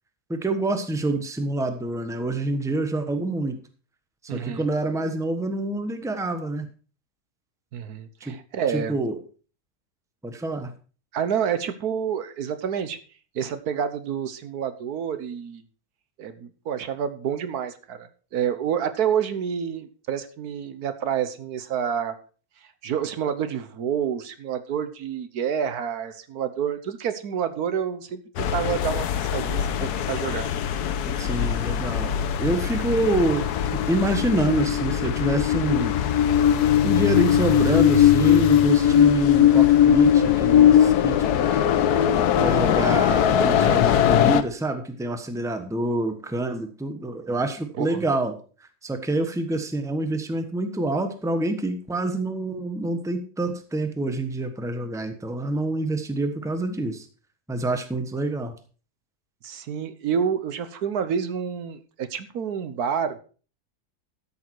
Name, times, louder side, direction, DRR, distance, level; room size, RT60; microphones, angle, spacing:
voice 1, 0.3-3.6 4.2-6.7 8.2-8.3 8.7-9.2 10.2-10.7 31.2-33.5 33.7-36.0 36.8-41.8 42.4-48.3 48.6-57.1 57.5-58.5, right 2 dB, ahead, 7 dB, 1.0 m, -27 dB
voice 2, 4.3-4.7 7.7-9.0 11.1-13.0 13.3-15.6 16.2-22.1 22.8-30.5 47.8-48.0 59.4-63.2, right 8 dB, 75° right, 11 dB, 1.4 m, -28 dB
sound 1, 28.4-44.4, left 10 dB, 85° left, 1.3 m, -20 dB
13.0 x 7.1 x 4.6 m, 0.39 s
omnidirectional pair, 1.6 m